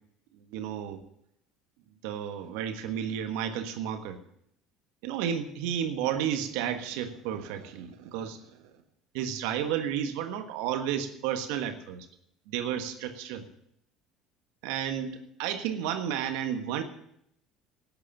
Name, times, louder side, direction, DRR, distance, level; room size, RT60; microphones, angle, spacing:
voice 1, 0.4-1.0 2.0-4.2 5.0-8.4 9.1-12.1 12.5-13.4 14.6-16.8, right 9 dB, 70° right, 7 dB, 1.4 m, -32 dB
12.5 x 9.7 x 7.2 m, 0.73 s
hypercardioid pair, 65°, 0 cm